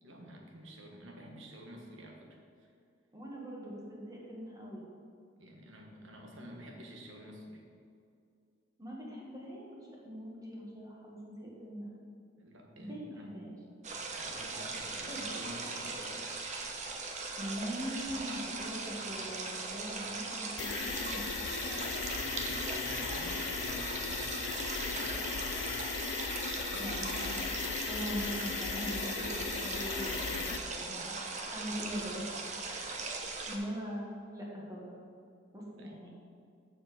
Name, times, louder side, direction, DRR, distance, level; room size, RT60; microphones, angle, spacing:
voice 1, 0.0-2.7 5.4-7.6 12.4-13.3 14.2-16.3 21.6-25.5 35.7-35.9, equal, 80° right, 1 dB, 1.4 m, -50 dB
voice 2, 3.1-4.8 8.8-12.0 12.7-13.5 15.1-15.2 17.4-21.3 26.8-32.2 32.7-35.1 35.5-36.1, equal, 20° right, -4 dB, 1.6 m, -42 dB
sound 1, 13.8-33.6, right 3 dB, 40° right, 0.9 m, -39 dB
sound 2, 20.6-30.6, left 7 dB, 70° left, 0.4 m, -37 dB
7.0 x 6.9 x 5.1 m, 2.4 s
head